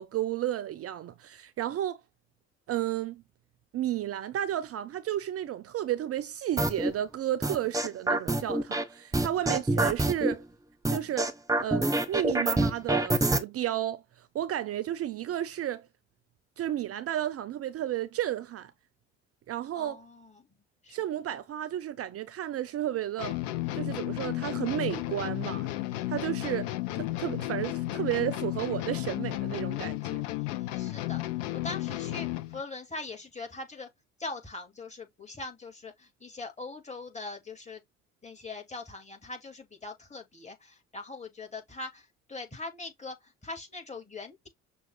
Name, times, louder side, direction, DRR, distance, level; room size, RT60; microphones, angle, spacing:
voice 1, 0.0-2.0 2.7-3.2 3.7-10.4 10.9-11.3 11.6-15.9 16.6-18.7 19.5-20.0 20.9-23.4 23.7-25.7 26.1-30.2, right 12 dB, 40° right, 0.5 m, -32 dB
sound 1, 6.6-6.9 7.4-8.8 9.1-10.3 10.8-13.4, right 2 dB, 10° right, 0.9 m, -26 dB
voice 2, 19.8-20.3 20.8-21.0 30.3-31.2 31.5-33.9 34.2-37.8 38.2-43.2 43.4-44.5, left 3 dB, 20° left, 2.1 m, -41 dB
sound 2, 23.2-32.6, left 17 dB, 70° left, 0.6 m, -33 dB
6.1 x 2.3 x 3.2 m
hypercardioid pair, 50°, 36 cm